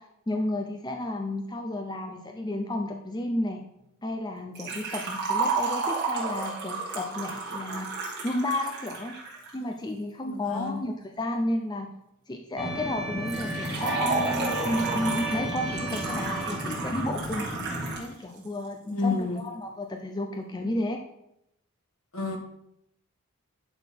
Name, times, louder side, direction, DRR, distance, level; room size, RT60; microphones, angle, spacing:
voice 1, 0.0-3.6 4.0-7.9 8.2-9.1 9.5-11.9 12.3-17.5 18.0-21.0, left 1 dB, 20° left, 3 dB, 0.6 m, -32 dB
Liquid, 4.5-9.5 13.3-18.1 18.4-18.5 19.4-19.5, right 4 dB, 45° right, 2.7 m, -32 dB
voice 2, 10.3-10.8 18.9-19.4 22.1-22.4, left 3 dB, 65° left, 3 dB, 1.7 m, -29 dB
sound 1, 12.6-18.0, right 1 dB, ahead, 1.1 m, -33 dB
10.5 x 4.0 x 6.0 m, 0.79 s
head